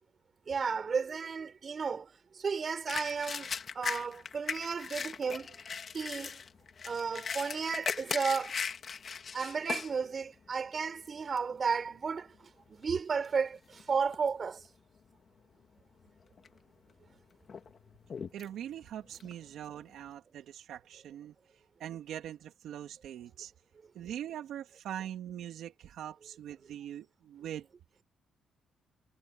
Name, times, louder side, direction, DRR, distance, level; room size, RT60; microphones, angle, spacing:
voice 1, 0.5-2.1 2.3-3.5 3.8-5.5 5.9-6.4 6.8-8.5 9.3-12.3 12.7-14.6, right 5 dB, 40° right, 5.1 m, -33 dB
sound 1, 2.9-9.9 10.5-10.6 11.1-11.5 12.2-12.3 12.7-13.8 14.1-14.7 15.0-15.1 16.0-16.6 17.0-20.1, left 6 dB, 45° left, 2.1 m, -39 dB
voice 2, 18.3-21.3 21.8-23.5 23.9-27.7, right 10 dB, 75° right, 3.2 m, -42 dB
cardioid pair, 90°, 0 cm